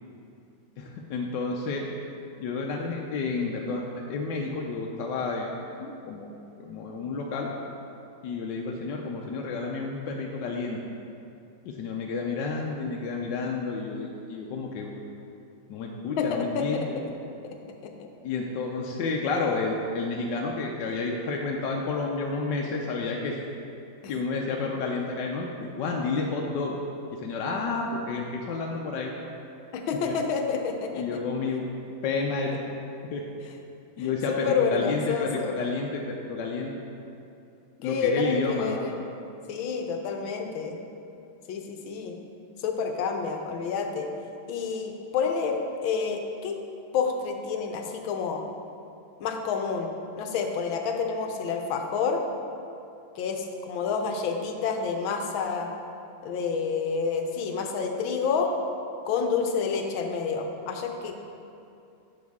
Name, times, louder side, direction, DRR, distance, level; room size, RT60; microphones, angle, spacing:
voice 1, 0.8-1.8 2.4-5.5 5.8-6.3 6.6-7.5 8.2-10.8 11.6-14.9 15.7-17.0 18.2-23.4 24.1-26.7 27.1-29.1 30.1-30.2 30.9-31.7 32.0-32.5 33.1-33.2 34.0-36.7 37.8-38.8, left 4 dB, 70° left, 0 dB, 1.2 m, -30 dB
voice 2, 16.2-16.9 17.8-18.1 29.7-31.1 34.0-35.6 37.8-39.0 39.5-40.8 41.5-42.2 42.6-44.1 44.5-46.6 46.9-48.4 49.2-52.2 53.2-55.7 56.2-58.5 59.1-61.3, left 5 dB, 90° left, 4 dB, 1.5 m, -29 dB
10.5 x 5.9 x 3.6 m, 2.7 s
omnidirectional pair, 2.1 m